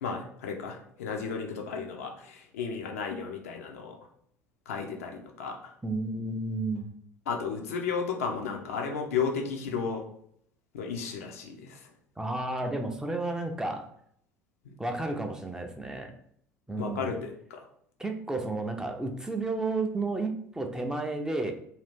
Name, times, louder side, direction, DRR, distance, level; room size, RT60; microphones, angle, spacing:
voice 1, 0.0-3.9 4.7-5.7 7.3-10.0 10.7-11.8 16.8-17.6, left 5 dB, 70° left, 2 dB, 0.5 m, -33 dB
voice 2, 5.8-6.9 12.2-13.9 14.8-16.1 16.7-17.1 18.0-21.5, right 2 dB, 10° right, 3 dB, 0.4 m, -32 dB
2.7 x 2.4 x 3.4 m, 0.67 s
figure-of-eight pair, 60°, 8 cm